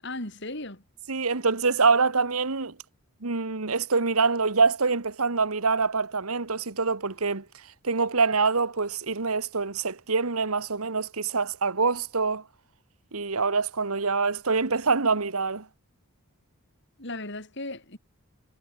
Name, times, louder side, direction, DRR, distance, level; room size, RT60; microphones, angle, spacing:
voice 1, 0.0-0.8 17.0-18.0, left 2 dB, 55° left, 6.5 m, -36 dB
voice 2, 1.1-2.7 3.2-7.4 7.8-12.4 13.1-15.6, right 4 dB, 85° right, 1.6 m, -25 dB
head